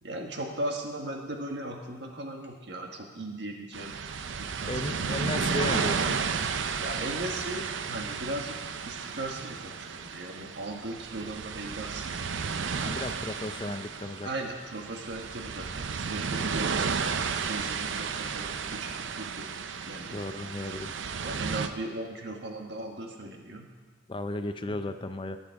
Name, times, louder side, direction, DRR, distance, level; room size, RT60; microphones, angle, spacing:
voice 1, 0.0-4.0 4.5-5.1 6.8-8.5 8.8-12.3 13.0-13.1 14.2-19.5 19.8-20.2 21.2-23.7 24.7-24.8, right 1 dB, 65° right, 2 dB, 1.5 m, -38 dB
sound 1, 3.7-21.7, right 5 dB, 85° right, 0.6 m, -33 dB
voice 2, 4.7-6.3 12.8-14.3 20.1-20.9 24.1-25.4, left 2 dB, 25° left, 9 dB, 0.5 m, -34 dB
18.0 x 7.1 x 4.7 m, 1.4 s
head